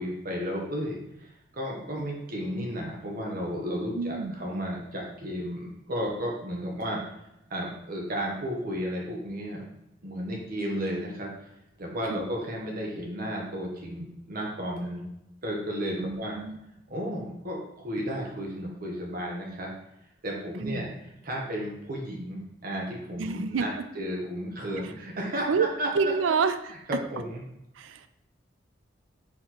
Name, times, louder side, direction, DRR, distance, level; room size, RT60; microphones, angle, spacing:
voice 1, 0.0-7.0 7.5-9.6 10.0-11.5 11.8-15.1 15.4-16.4 16.9-19.7 20.2-20.9 21.2-23.7 24.0-26.1 26.9-27.4, equal, 50° right, -1 dB, 0.8 m, -33 dB
voice 2, 3.9-4.4 12.1-12.2 16.0-16.6 20.6-20.9 23.2-23.7 25.5-25.7 25.9-26.6 27.8-28.1, right 5 dB, 85° right, 11 dB, 0.4 m, -27 dB
4.3 x 2.9 x 4.0 m, 0.86 s
head